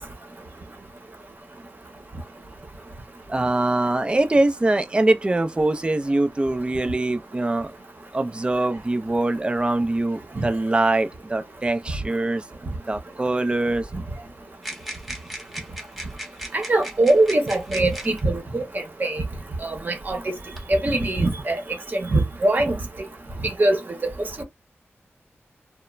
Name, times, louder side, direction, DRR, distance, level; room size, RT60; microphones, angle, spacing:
voice 1, 3.3-7.7 8.1-12.4 12.9-13.9, right 2 dB, 20° right, 0.4 m, -23 dB
sound 1, 14.6-18.2 19.2-19.3 20.1-20.8, right 1 dB, ahead, 0.8 m, -37 dB
voice 2, 16.5-18.6 19.0-19.2 19.6-20.2 20.7-21.6 21.9-22.8 23.6-23.8 24.4-24.5, right 2 dB, 45° right, 0.8 m, -21 dB
2.3 x 2.0 x 3.0 m
wide cardioid pair, 95°, 5 cm